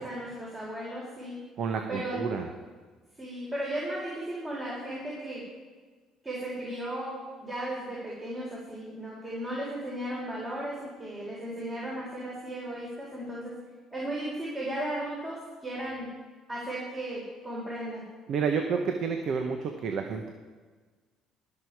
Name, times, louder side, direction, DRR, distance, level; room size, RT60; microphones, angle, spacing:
voice 1, 0.0-1.4 1.9-2.2 3.2-5.4 6.2-13.5 13.9-16.1 16.5-18.1, right 1 dB, 20° right, -5 dB, 4.0 m, -35 dB
voice 2, 1.6-2.5 18.3-20.3, right 5 dB, 60° right, 4 dB, 1.1 m, -30 dB
20.0 x 6.9 x 4.7 m, 1.4 s
supercardioid pair, 85°, 0 cm